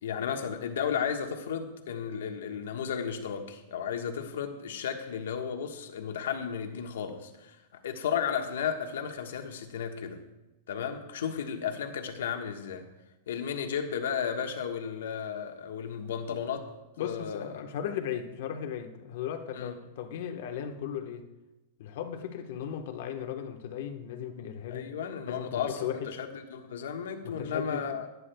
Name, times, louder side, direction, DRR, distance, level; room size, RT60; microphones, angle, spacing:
voice 1, 0.0-7.6 7.8-10.2 10.7-12.9 13.3-16.6 17.0-17.6 19.5-19.7 24.7-28.1, left 7 dB, 90° left, 1.3 m, -34 dB
voice 2, 17.0-21.3 21.8-24.9 25.3-26.2 27.2-27.8, left 9 dB, 60° left, 1.2 m, -36 dB
24.5 x 9.7 x 2.3 m
supercardioid pair, 160°, 0 cm